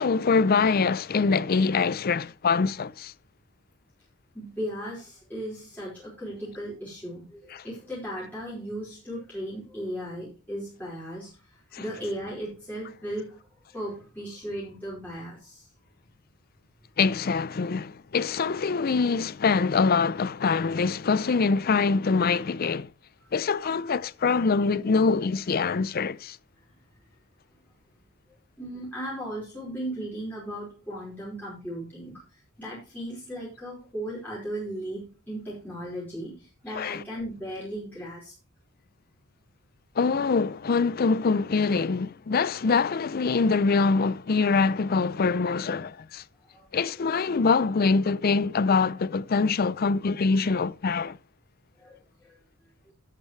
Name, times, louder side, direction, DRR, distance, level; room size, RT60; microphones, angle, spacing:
voice 1, 0.0-3.1 7.5-7.6 11.7-11.8 17.0-22.9 23.3-26.4 36.7-37.0 40.0-46.2 46.7-51.2, left 4 dB, 40° left, 0.4 m, -24 dB
voice 2, 4.3-13.4 13.7-15.7 28.6-38.3 46.5-46.7 51.8-52.0 52.2-52.3, equal, 10° left, 4.7 m, -36 dB
12.0 x 9.0 x 3.2 m
head